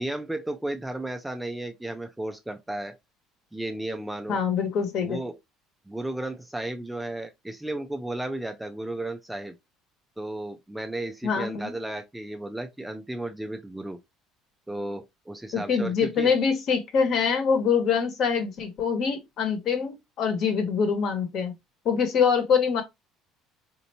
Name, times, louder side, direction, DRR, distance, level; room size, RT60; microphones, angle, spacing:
voice 1, 0.0-3.0 3.5-4.4 5.0-5.4 5.9-9.6 10.2-14.0 14.7-16.3, right 1 dB, 5° right, 0.4 m, -34 dB
voice 2, 4.3-5.2 11.2-11.7 15.5-21.5 21.8-22.8, left 6 dB, 50° left, 1.2 m, -24 dB
4.3 x 2.8 x 2.8 m
cardioid pair, 140°, 0 cm